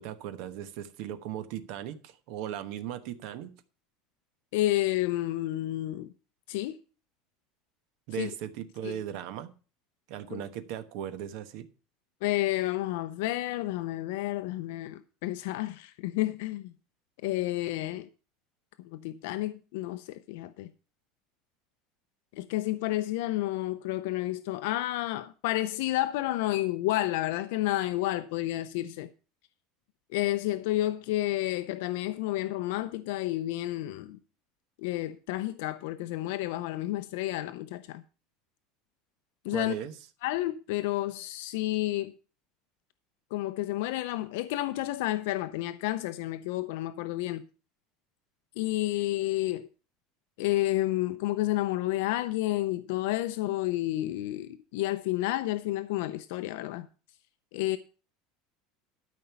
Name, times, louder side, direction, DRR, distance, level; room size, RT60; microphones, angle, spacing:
voice 1, 0.0-3.5 8.1-9.5 10.1-11.7 39.5-39.9, right 10 dB, 55° right, 1.1 m, -37 dB
voice 2, 4.5-6.1 6.5-6.8 8.2-8.3 8.8-9.0 10.3-10.4 12.2-16.7 17.2-18.1 18.9-20.7 22.3-29.1 30.1-34.2 34.8-38.0 39.4-39.7 40.2-42.1 43.3-47.5 48.6-49.7 50.4-56.9 57.5-57.8, left 16 dB, 70° left, 0.6 m, -30 dB
12.5 x 5.2 x 6.9 m
cardioid pair, 175°, 0 cm